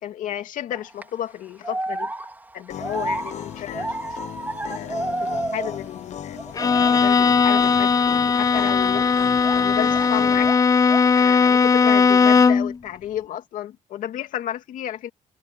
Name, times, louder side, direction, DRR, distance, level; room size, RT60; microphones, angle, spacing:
voice 1, 0.0-2.1 2.5-4.2 4.6-6.4 6.6-9.2 9.6-10.5 11.1-15.1, left 11 dB, 85° left, 2.4 m, -32 dB
sound 1, 0.7-1.0 1.6-6.0 6.3-7.0 7.5-7.7 8.5-10.2 10.4-11.2, right 2 dB, 15° right, 3.9 m, -31 dB
sound 2, 2.7-10.5, left 10 dB, 60° left, 0.9 m, -37 dB
Bowed string instrument, 6.5-12.8, left 5 dB, 25° left, 0.5 m, -18 dB
cardioid pair, 110°, 13 cm